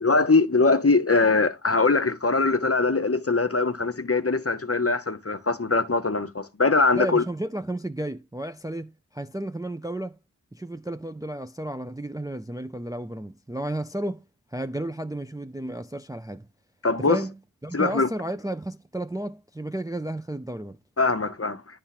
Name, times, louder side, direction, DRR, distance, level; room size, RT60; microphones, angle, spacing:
voice 1, 0.0-7.2 16.8-17.2 17.7-18.1 21.0-21.8, left 3 dB, 40° left, 0.8 m, -22 dB
voice 2, 6.9-10.2 10.5-14.2 14.5-16.5 17.0-20.8, right 1 dB, 10° right, 0.4 m, -33 dB
9.8 x 3.3 x 5.8 m
wide cardioid pair, 45°, 37 cm